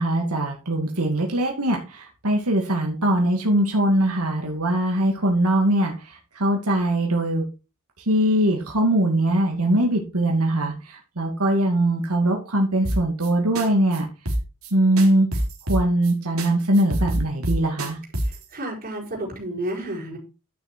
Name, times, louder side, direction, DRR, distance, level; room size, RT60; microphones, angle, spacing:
voice 1, 0.0-7.4 8.1-14.1 14.7-15.3 15.7-18.0, right 1 dB, 85° right, 1 dB, 2.4 m, -21 dB
sound 1, 12.8-13.3 13.5-13.7 13.9-14.0 14.3-14.7 15.0-16.1 16.4-16.5 16.7-18.4, right 1 dB, 70° right, 3.2 m, -25 dB
voice 2, 18.5-20.2, right 1 dB, 40° right, -3 dB, 5.1 m, -31 dB
11.0 x 6.3 x 4.5 m, 0.31 s
head